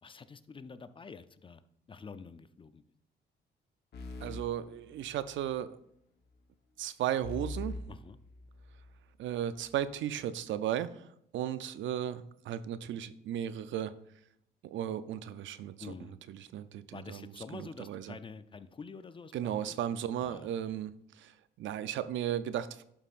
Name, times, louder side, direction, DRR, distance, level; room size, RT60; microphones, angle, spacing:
voice 1, 0.0-1.6 1.9-2.8 7.9-8.2 15.8-16.2 16.9-19.8 20.2-20.8, left 5 dB, 25° left, 12 dB, 0.5 m, -48 dB
sound 1, 3.9-5.5 7.2-9.0, left 2 dB, 55° left, 1.1 m, -43 dB
voice 2, 4.2-5.8 6.8-7.8 9.2-14.0 14.6-15.9 16.3-18.2 19.3-22.8, right 10 dB, 75° right, 14 dB, 0.5 m, -35 dB
11.5 x 5.5 x 2.5 m, 0.75 s
cardioid pair, 90°, 20 cm